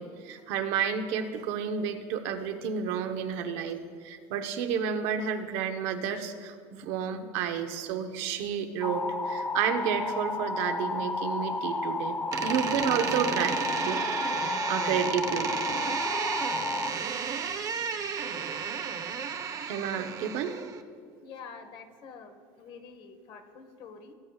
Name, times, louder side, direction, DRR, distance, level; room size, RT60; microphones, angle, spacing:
voice 1, 0.0-12.2 12.4-15.6 19.7-20.6, right 7 dB, 70° right, 6 dB, 0.9 m, -31 dB
sound 1, 8.8-16.9, left 3 dB, 15° left, 0.5 m, -32 dB
Door, 12.3-20.8, right 6 dB, 35° right, 0.7 m, -33 dB
voice 2, 16.0-16.3 16.9-17.1 20.5-20.7 21.2-24.1, left 5 dB, 50° left, 7 dB, 1.2 m, -48 dB
18.5 x 8.6 x 2.4 m, 2.1 s
supercardioid pair, 120°, 10 cm